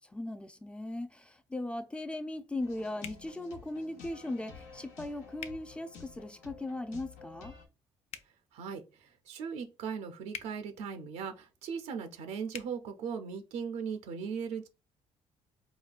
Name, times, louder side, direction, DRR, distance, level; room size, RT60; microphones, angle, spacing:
voice 1, 0.1-7.5, left 2 dB, 10° left, 0.4 m, -38 dB
sound 1, 2.6-7.6, left 5 dB, 85° left, 0.8 m, -51 dB
sound 2, 3.0-3.2 5.4-5.6 8.1-8.3 10.3-10.5 12.5-12.7, left 8 dB, 65° left, 0.4 m, -43 dB
voice 2, 8.5-14.7, right 6 dB, 80° right, 0.5 m, -38 dB
5.0 x 2.3 x 2.4 m
cardioid pair, 100°, 12 cm